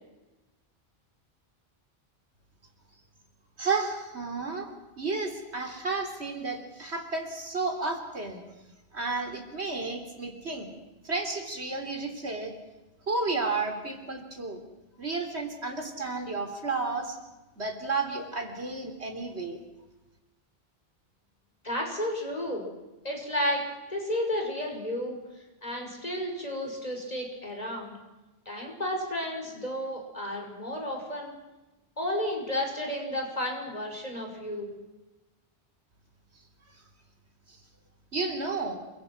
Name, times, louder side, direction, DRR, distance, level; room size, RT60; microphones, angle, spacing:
voice 1, 3.6-4.7 5.0-8.4 8.9-10.7 11.0-12.5 13.1-14.6 15.0-17.2 17.6-19.6 37.5-37.6 38.1-38.8, right 3 dB, 80° right, 4 dB, 4.0 m, -32 dB
voice 2, 21.6-22.7 23.0-23.6 23.9-25.2 25.6-27.9 28.5-31.3 32.0-34.7, left 1 dB, 35° left, 1 dB, 6.2 m, -32 dB
28.5 x 24.0 x 6.2 m, 1.1 s
omnidirectional pair, 1.1 m